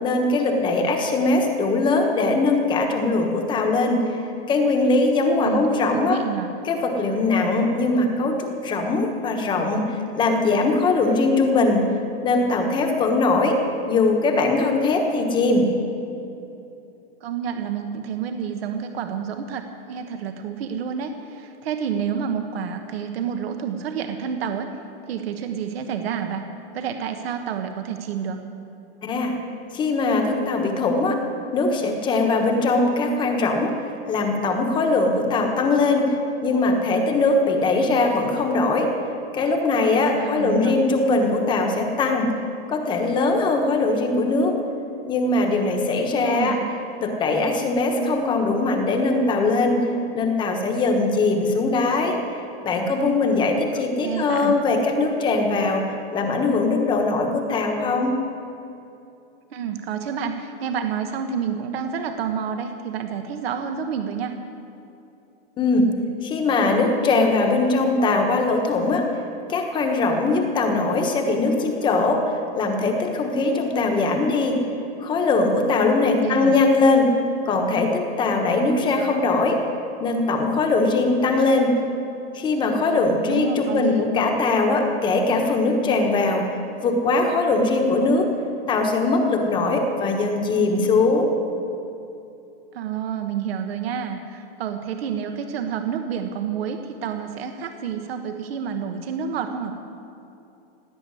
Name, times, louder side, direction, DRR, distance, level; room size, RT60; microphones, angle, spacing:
voice 1, 0.0-4.1 4.5-6.2 6.6-11.9 12.2-15.7 29.0-29.3 29.7-31.2 31.5-33.7 34.1-36.1 36.4-38.9 39.3-42.3 42.7-44.6 45.1-46.6 47.0-49.9 50.1-52.2 52.6-55.9 56.1-58.2 65.6-65.9 66.2-69.1 69.5-74.6 75.0-77.2 77.5-79.6 80.0-81.8 82.3-86.5 86.8-88.3 88.7-91.3, left 3 dB, 15° left, 3 dB, 1.2 m, -21 dB
voice 2, 5.4-6.5 17.2-24.7 25.1-26.5 26.7-28.4 40.2-40.8 46.1-46.7 53.8-54.6 59.5-64.4 76.2-76.6 83.3-84.0 92.7-99.7, right 7 dB, 75° right, 6 dB, 1.3 m, -29 dB
17.0 x 8.5 x 9.6 m, 2.8 s
supercardioid pair, 170°, 31 cm